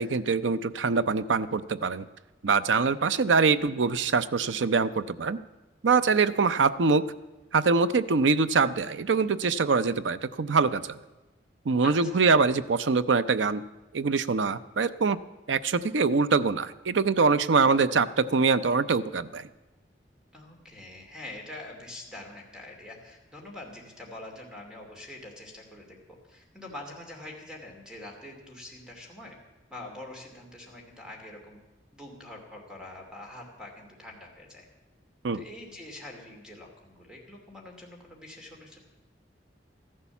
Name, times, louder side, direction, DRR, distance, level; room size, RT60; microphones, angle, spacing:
voice 1, 0.0-2.1 2.4-5.4 5.8-7.0 7.5-11.0 11.7-13.6 13.9-15.2 15.5-19.5 35.2-35.4, right 4 dB, 90° right, 14 dB, 0.6 m, -24 dB
voice 2, 11.8-12.3 20.3-26.0 26.3-29.4 29.7-31.6 31.9-34.7 35.3-38.8, left 1 dB, 5° right, 1 dB, 2.6 m, -44 dB
14.0 x 11.0 x 7.1 m, 1.1 s
head